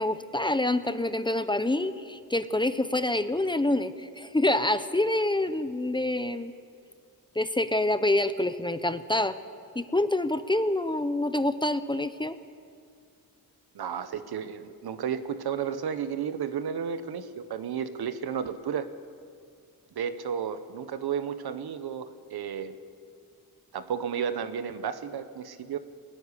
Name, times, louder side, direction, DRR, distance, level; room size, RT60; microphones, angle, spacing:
voice 1, 0.0-6.5 7.4-9.4 9.7-12.4, left 1 dB, 10° left, 11 dB, 0.7 m, -26 dB
voice 2, 13.7-18.9 19.9-22.8 23.7-25.8, right 7 dB, 80° right, 11 dB, 1.2 m, -32 dB
22.0 x 13.5 x 10.0 m, 2.2 s
wide cardioid pair, 125°, 38 cm